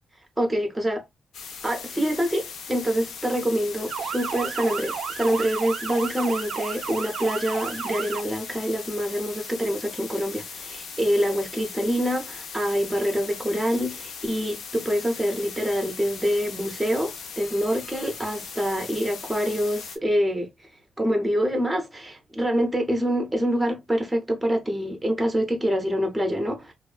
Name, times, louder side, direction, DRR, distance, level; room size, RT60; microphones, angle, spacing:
voice 1, 0.4-1.0 1.6-20.5 21.0-26.7, equal, 5° right, 0.6 m, -26 dB
sound 1, 1.3-20.0, left 5 dB, 65° left, 0.5 m, -39 dB
Motor vehicle (road) / Siren, 3.9-8.2, right 8 dB, 55° right, 0.3 m, -32 dB
3.0 x 2.0 x 2.4 m
wide cardioid pair, 175°, 0 cm